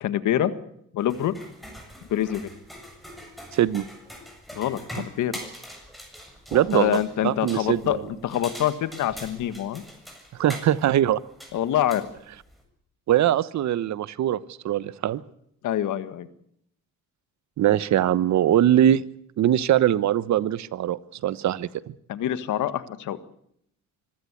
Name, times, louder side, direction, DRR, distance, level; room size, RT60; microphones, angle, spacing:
voice 1, 0.0-0.5 0.9-1.3 2.1-2.5 4.5-5.4 6.7-9.8 11.5-12.1 15.6-16.3 22.1-23.2, left 11 dB, 80° left, 12 dB, 1.7 m, -25 dB
sound 1, 1.0-12.6, equal, ahead, 6.9 m, -43 dB
voice 2, 3.5-3.8 6.5-8.0 10.4-11.2 13.1-14.4 14.6-15.2 17.6-19.0 19.4-21.7, right 11 dB, 70° right, 17 dB, 1.0 m, -22 dB
25.0 x 15.0 x 8.4 m, 0.72 s
cardioid pair, 90°, 30 cm